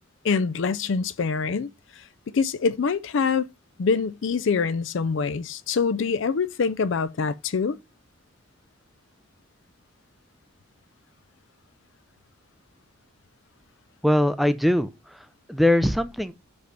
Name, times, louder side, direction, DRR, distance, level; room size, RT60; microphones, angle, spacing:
voice 1, 0.2-1.7 2.3-3.5 3.8-7.8, left 5 dB, 60° left, 0.4 m, -25 dB
voice 2, 14.0-16.3, left 1 dB, ahead, 0.4 m, -22 dB
6.0 x 5.3 x 5.1 m
head